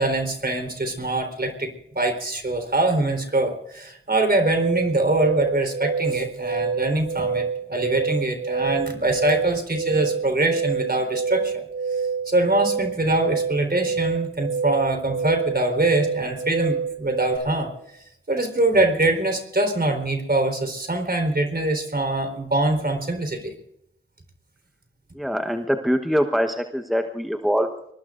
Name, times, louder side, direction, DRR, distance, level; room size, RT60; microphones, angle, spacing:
voice 1, 0.0-1.7 1.9-11.6 12.3-17.7 18.3-23.5, right 2 dB, 50° right, 5 dB, 4.1 m, -23 dB
sound 1, 4.4-17.4, right 5 dB, 80° right, 5.9 m, -27 dB
voice 2, 25.1-27.9, equal, ahead, 5 dB, 1.2 m, -24 dB
25.5 x 21.0 x 2.6 m, 0.75 s
cardioid pair, 45°, 21 cm